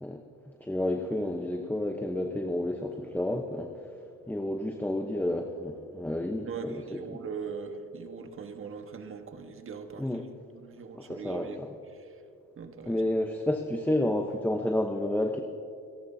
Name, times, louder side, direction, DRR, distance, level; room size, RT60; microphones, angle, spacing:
voice 1, 0.6-3.7 4.3-7.2 10.0-10.2 11.0-11.7 12.8-15.4, left 1 dB, 5° left, 3 dB, 0.9 m, -30 dB
voice 2, 6.5-10.0 10.6-11.6 12.6-13.0, right 5 dB, 45° right, 6 dB, 1.4 m, -40 dB
29.5 x 11.0 x 2.8 m, 2.4 s
cardioid pair, 90°, 30 cm